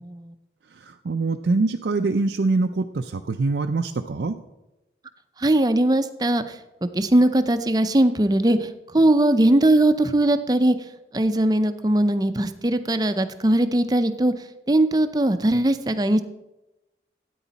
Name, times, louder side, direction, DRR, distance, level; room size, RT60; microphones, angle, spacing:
voice 1, 0.7-4.4, right 3 dB, 80° right, 5 dB, 0.5 m, -24 dB
voice 2, 5.4-10.8 11.1-14.3 14.7-16.2, right 1 dB, 20° right, 10 dB, 0.5 m, -20 dB
13.5 x 9.3 x 4.1 m, 0.97 s
head